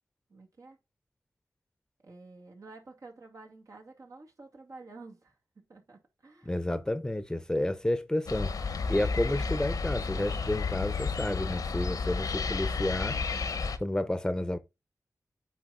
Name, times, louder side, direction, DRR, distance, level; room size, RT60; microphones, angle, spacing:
voice 1, 0.3-0.8 2.0-6.6, right 3 dB, 65° right, 2.2 m, -50 dB
voice 2, 6.4-8.5 8.9-13.2 13.8-14.6, left 1 dB, 10° left, 0.8 m, -30 dB
sound 1, 8.3-13.8, left 4 dB, 90° left, 0.9 m, -32 dB
8.9 x 4.1 x 3.8 m
wide cardioid pair, 100°, 6 cm